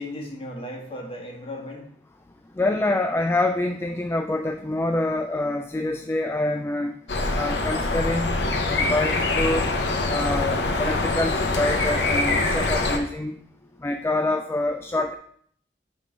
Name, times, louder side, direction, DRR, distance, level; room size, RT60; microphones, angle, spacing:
voice 1, 0.0-1.9 13.5-13.9, left 1 dB, 35° left, -1 dB, 1.6 m, -36 dB
voice 2, 2.6-6.9 7.3-8.3 8.7-9.7 10.1-13.4 13.8-15.1, left 2 dB, 15° left, 6 dB, 0.3 m, -26 dB
sound 1, 7.1-13.0, left 2 dB, 70° left, 0.9 m, -24 dB
7.4 x 3.8 x 5.1 m, 0.62 s
head